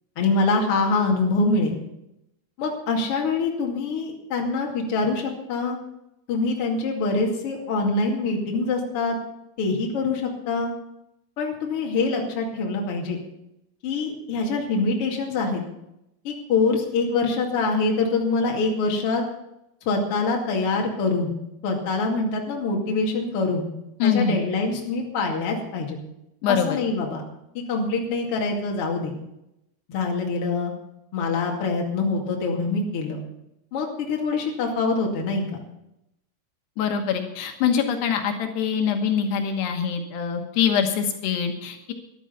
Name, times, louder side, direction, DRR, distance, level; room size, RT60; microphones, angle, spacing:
voice 1, 0.2-1.7 2.6-5.8 6.3-9.2 9.6-10.7 11.4-13.2 13.8-15.6 16.2-19.2 19.8-21.4 21.6-23.7 24.0-26.0 26.5-27.2 27.7-29.1 29.9-30.7 31.1-33.2 33.7-35.5, left 3 dB, 40° left, 0 dB, 2.6 m, -24 dB
voice 2, 24.0-24.4 26.4-26.8 36.8-41.9, left 7 dB, 75° left, 4 dB, 3.2 m, -24 dB
13.5 x 11.5 x 5.7 m, 0.85 s
omnidirectional pair, 4.9 m